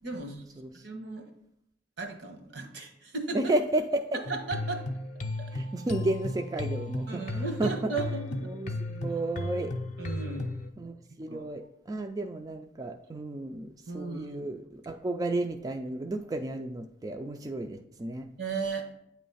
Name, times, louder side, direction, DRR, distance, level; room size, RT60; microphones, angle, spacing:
voice 1, 0.0-0.4 0.7-1.3 2.0-3.4 4.3-4.8 5.4-5.5 7.1-8.5 10.0-10.5 11.3-11.5 13.9-14.5 18.4-19.0, right 3 dB, 80° right, 4 dB, 1.2 m, -36 dB
voice 2, 3.3-4.2 5.5-7.1 7.3-7.9 8.4-9.7 10.8-18.3, right 2 dB, 20° right, 5 dB, 0.3 m, -32 dB
sound 1, 4.3-10.7, left 2 dB, 40° left, 0.5 m, -35 dB
8.7 x 3.1 x 5.5 m, 0.76 s
head